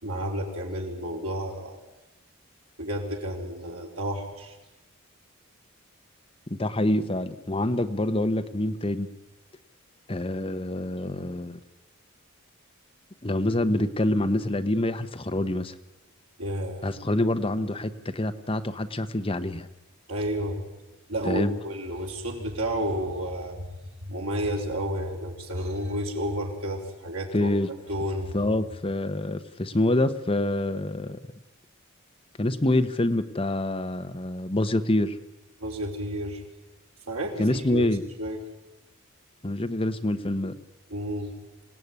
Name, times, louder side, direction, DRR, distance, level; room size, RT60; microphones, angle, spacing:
voice 1, 0.0-1.8 2.8-4.5 16.4-16.9 20.1-20.6 21.1-23.8 24.0-27.5 27.9-28.3 35.6-36.4 37.1-37.8 38.2-38.4 40.9-41.3, equal, 90° right, 1 dB, 4.8 m, -31 dB
voice 2, 6.5-9.1 10.1-11.6 13.2-15.8 16.8-19.7 21.2-21.5 27.3-27.7 28.3-31.2 32.4-35.2 37.4-38.0 39.4-40.5, left 1 dB, 25° left, 9 dB, 1.0 m, -26 dB
26.5 x 18.0 x 9.6 m, 1.1 s
head